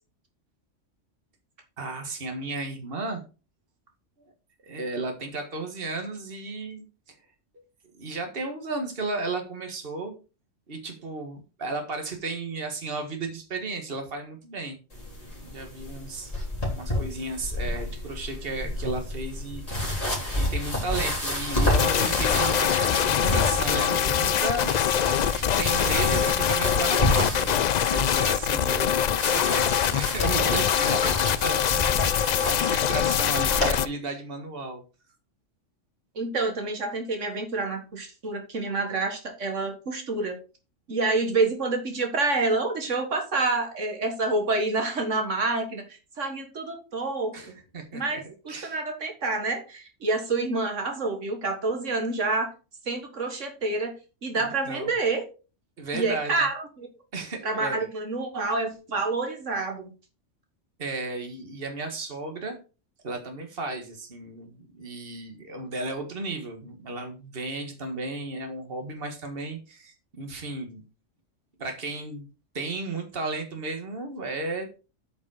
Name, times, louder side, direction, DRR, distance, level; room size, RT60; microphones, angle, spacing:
voice 1, 1.8-3.2 4.2-4.3 4.7-7.2 8.0-10.1 10.7-14.8 15.3-16.3 16.7-19.8 20.4-24.7 25.6-28.9 29.2-32.1 32.5-34.8 47.3-48.2 48.5-48.8 54.4-54.9 55.8-56.5 57.1-57.9 60.8-62.6 63.0-70.8 71.6-72.3 72.5-74.7, right 3 dB, 50° right, 5 dB, 1.9 m, -34 dB
sound 1, 14.9-33.7, left 1 dB, 30° left, 3.5 m, -30 dB
sound 2, 21.7-33.9, left 9 dB, 70° left, 0.4 m, -24 dB
voice 2, 36.2-40.4 40.9-47.3 47.9-52.5 52.9-53.9 54.2-55.2 55.9-56.9 57.4-59.9, right 3 dB, 75° right, 4 dB, 2.0 m, -28 dB
8.5 x 5.4 x 4.9 m, 0.33 s
omnidirectional pair, 1.3 m